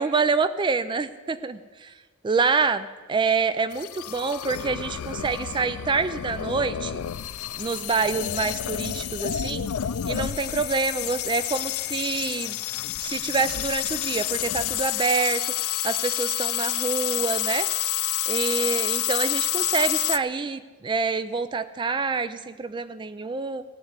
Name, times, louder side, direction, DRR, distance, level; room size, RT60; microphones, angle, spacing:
voice 1, 0.0-1.9 2.2-7.0 7.6-9.7 10.1-12.6 13.0-15.5 15.8-17.7 18.3-23.6, right 4 dB, 20° right, 13 dB, 0.3 m, -26 dB
sound 1, 3.7-20.2, left 13 dB, 85° left, 0.4 m, -29 dB
16.0 x 6.9 x 9.6 m, 1.4 s
head